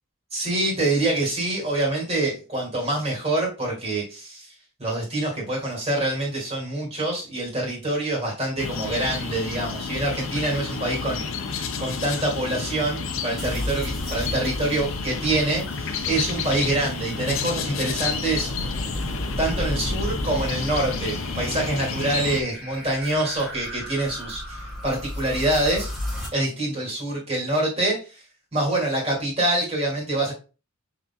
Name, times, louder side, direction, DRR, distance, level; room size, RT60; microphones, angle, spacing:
voice 1, 0.3-4.5 4.8-11.2 11.8-18.6 19.4-25.9 26.3-28.0 28.5-30.3, right 2 dB, 30° right, -2 dB, 2.5 m, -25 dB
sound 1, 8.6-22.4, left 4 dB, 65° left, 0.7 m, -30 dB
sound 2, 13.4-26.3, left 1 dB, ahead, 1.8 m, -34 dB
5.8 x 3.9 x 2.3 m, 0.32 s
head